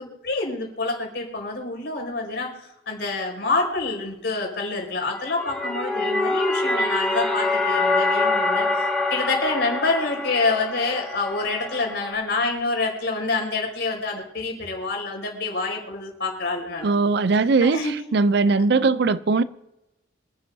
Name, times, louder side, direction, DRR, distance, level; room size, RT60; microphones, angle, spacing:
voice 1, 0.0-16.9 17.6-17.9, left 3 dB, 60° left, 4.8 m, -27 dB
sound 1, 5.2-12.1, left 2 dB, 5° left, 2.3 m, -25 dB
voice 2, 16.8-19.4, right 4 dB, 60° right, 0.5 m, -20 dB
26.5 x 9.9 x 2.7 m
head